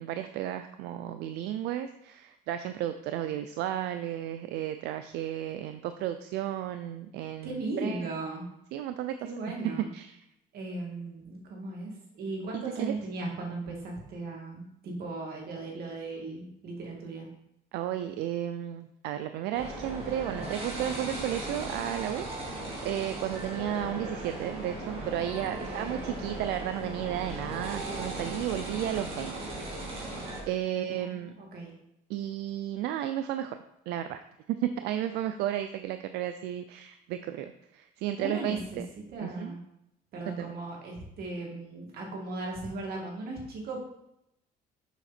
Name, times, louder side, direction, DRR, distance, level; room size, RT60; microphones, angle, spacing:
voice 1, 0.0-8.1 8.7-9.2 9.9-10.2 12.5-12.9 17.7-29.5 30.5-31.3 32.1-33.6 33.9-34.2 34.5-38.9 39.2-39.6 40.3-40.5, right 11 dB, 85° right, 9 dB, 0.4 m, -33 dB
voice 2, 7.4-8.4 9.2-9.9 10.5-17.3 25.6-26.2 30.7-31.7 38.2-38.8 39.1-39.6 40.1-43.8, right 2 dB, 65° right, -1 dB, 2.5 m, -37 dB
sound 1, 19.5-30.4, right 1 dB, 35° right, 2.6 m, -37 dB
7.2 x 5.7 x 4.2 m, 0.82 s
cardioid pair, 110°, 17 cm